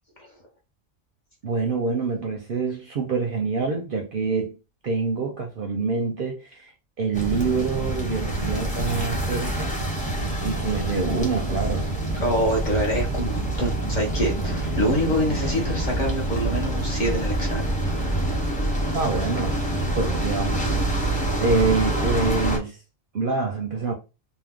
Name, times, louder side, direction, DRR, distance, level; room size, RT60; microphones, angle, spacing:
voice 1, 1.4-4.6 4.8-6.7 7.0-9.7 10.4-11.9 18.9-20.6 21.0-21.1 21.4-22.8 23.1-23.9, right 4 dB, 55° right, 0.6 m, -26 dB
sound 1, 7.1-22.6, right 1 dB, 10° left, 0.5 m, -26 dB
voice 2, 12.2-17.6 17.9-18.3, equal, 45° left, 0.7 m, -26 dB
2.7 x 2.1 x 3.4 m
omnidirectional pair, 1.3 m